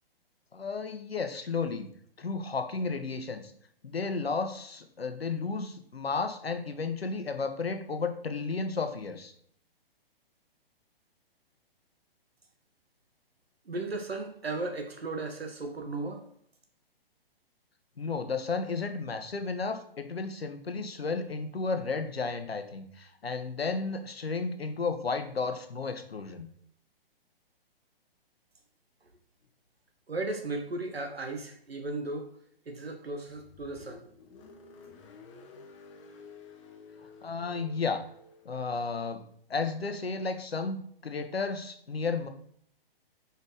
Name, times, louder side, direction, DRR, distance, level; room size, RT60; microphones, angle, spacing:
voice 1, 0.5-1.9 2.2-3.5 3.8-9.3 18.0-26.5 37.2-38.0 38.4-39.2 39.5-42.3, left 4 dB, 80° left, 8 dB, 0.9 m, -33 dB
voice 2, 13.6-16.3 30.1-32.4 32.7-34.0, right 2 dB, 85° right, 5 dB, 1.0 m, -35 dB
Car, 33.2-38.6, left 4 dB, 30° left, 1.0 m, -52 dB
5.3 x 4.3 x 4.9 m, 0.63 s
figure-of-eight pair, 125°, 30 cm